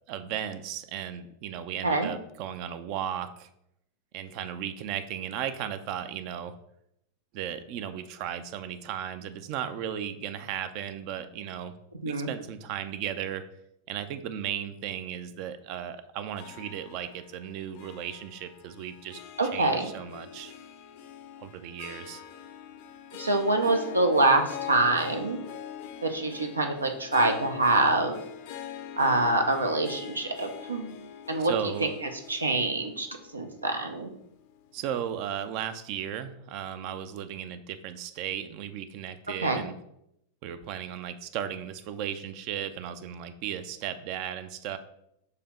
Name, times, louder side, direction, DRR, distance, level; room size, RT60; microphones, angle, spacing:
voice 1, 0.1-3.5 4.1-6.6 7.3-11.7 12.0-13.4 13.9-19.2 19.5-20.5 21.4-22.2 31.4-31.9 34.7-39.7 40.4-44.8, right 9 dB, 45° right, 10 dB, 0.5 m, -35 dB
Harp, 16.3-34.8, left 9 dB, 50° left, 0.7 m, -43 dB
voice 2, 19.4-19.9 23.2-25.4 26.0-28.2 29.0-31.0 31.3-31.5 31.8-33.1 33.3-34.1 39.4-39.6, right 2 dB, 80° right, 4 dB, 0.7 m, -25 dB
6.6 x 2.8 x 5.4 m, 0.77 s
figure-of-eight pair, 90°, 0 cm